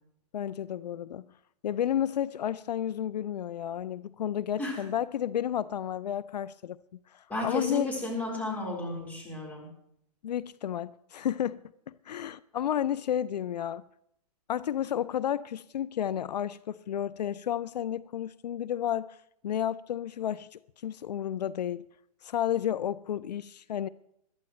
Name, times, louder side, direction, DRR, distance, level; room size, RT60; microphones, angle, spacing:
voice 1, 0.3-1.3 1.6-6.8 7.1-7.9 10.2-13.8 14.5-19.2 19.4-21.8 22.2-23.9, left 10 dB, 80° left, 0.5 m, -32 dB
voice 2, 7.3-9.7, left 2 dB, 5° left, 4.1 m, -33 dB
21.5 x 12.5 x 3.1 m
hypercardioid pair, 140°, 21 cm